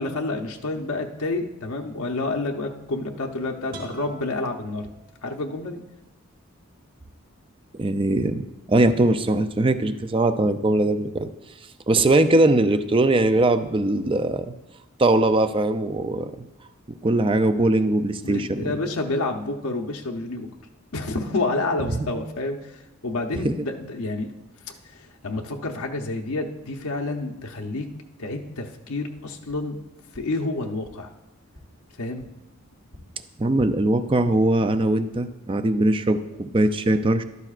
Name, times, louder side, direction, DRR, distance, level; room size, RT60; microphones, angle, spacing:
voice 1, 0.0-4.9 5.2-5.8 18.2-20.5 20.9-24.3 24.7-27.9 28.2-29.8 30.1-31.1 32.0-32.2, left 2 dB, 80° left, 2 dB, 0.8 m, -29 dB
sound 1, 3.7-5.6, right 2 dB, 40° right, 2.8 m, -44 dB
voice 2, 7.7-8.4 8.7-11.3 11.9-14.5 15.0-16.5 17.0-18.6 21.9-22.2 23.4-23.5 33.4-37.2, right 2 dB, 25° right, 10 dB, 0.4 m, -21 dB
sound 2, 29.4-29.6 30.1-30.2 30.8-30.9 31.5-31.6 32.2-32.3 32.9-33.0 33.5-33.7 34.1-34.4, left 1 dB, 75° right, 4.3 m, -48 dB
13.5 x 12.5 x 2.5 m, 0.97 s
head